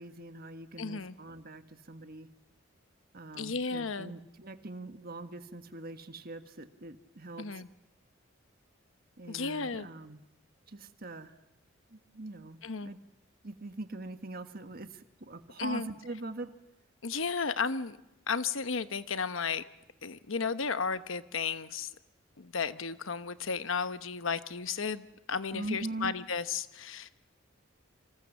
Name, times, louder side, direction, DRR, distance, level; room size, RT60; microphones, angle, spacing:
voice 1, 0.0-2.3 3.1-7.6 9.2-10.2 10.7-11.4 11.9-13.0 13.4-16.5 25.5-26.1, right 2 dB, 50° right, 8 dB, 1.5 m, -42 dB
voice 2, 0.8-1.2 3.3-4.1 7.4-7.7 9.3-9.9 12.6-12.9 15.6-15.9 17.0-18.0 18.3-19.6 20.0-21.9 22.4-27.1, left 5 dB, 75° left, 12 dB, 1.0 m, -34 dB
28.0 x 25.5 x 7.2 m, 0.92 s
head